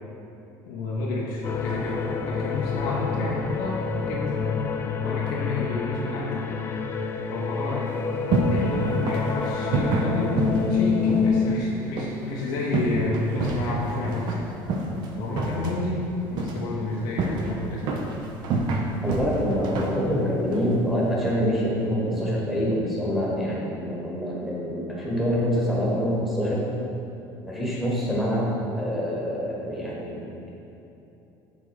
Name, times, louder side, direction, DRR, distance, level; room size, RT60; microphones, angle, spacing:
voice 1, 0.7-4.3 5.0-6.4 7.3-10.3 10.7-14.4 15.1-16.0 16.3-17.9, left 2 dB, 90° left, -5 dB, 0.9 m, -30 dB
sound 1, 1.4-11.6, left 5 dB, 25° left, 0.4 m, -27 dB
sound 2, 7.9-21.3, right 3 dB, 55° right, 0.7 m, -29 dB
voice 2, 19.0-26.6 27.4-30.5, equal, ahead, -5 dB, 1.3 m, -26 dB
6.8 x 4.0 x 4.7 m, 2.9 s
cardioid pair, 145°, 9 cm